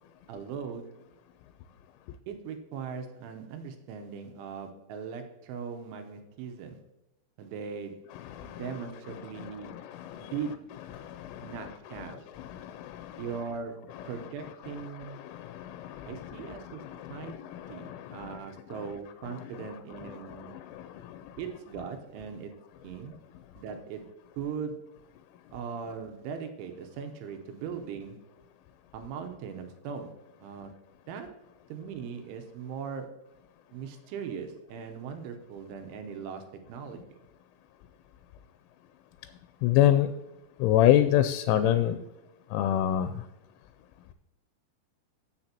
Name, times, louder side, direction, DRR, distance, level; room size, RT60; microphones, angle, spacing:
voice 1, 0.3-0.9 2.3-6.8 7.4-8.1 8.4-9.7 10.2-10.7 11.4-12.3 13.2-15.2 16.1-16.8 17.1-17.4 17.7-20.6 21.4-22.5 22.8-23.1 23.6-24.1 24.4-24.9 25.5-28.2 28.9-30.8 31.1-31.4 31.7-33.2 33.7-37.2, right 6 dB, 80° right, 6 dB, 3.2 m, -39 dB
voice 2, 8.3-8.6 9.4-10.3 11.2-11.6 12.4-13.2 15.3-16.6 16.9-18.3 20.4-20.5 39.6-40.1 40.6-42.0 42.5-43.1, left 12 dB, 90° left, 10 dB, 3.0 m, -27 dB
16.0 x 6.7 x 2.9 m, 0.96 s
omnidirectional pair, 5.5 m